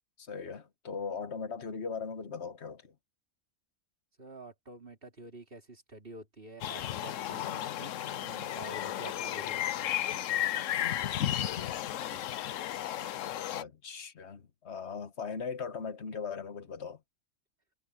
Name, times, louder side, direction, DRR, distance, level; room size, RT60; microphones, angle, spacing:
voice 1, 0.2-2.9 10.8-11.0 13.5-17.0, left 5 dB, 55° left, 1.6 m, -39 dB
voice 2, 4.2-9.9 12.1-12.2, right 2 dB, 40° right, 3.8 m, -49 dB
sound 1, 6.6-13.6, left 12 dB, 70° left, 1.0 m, -34 dB
omnidirectional pair, 1.4 m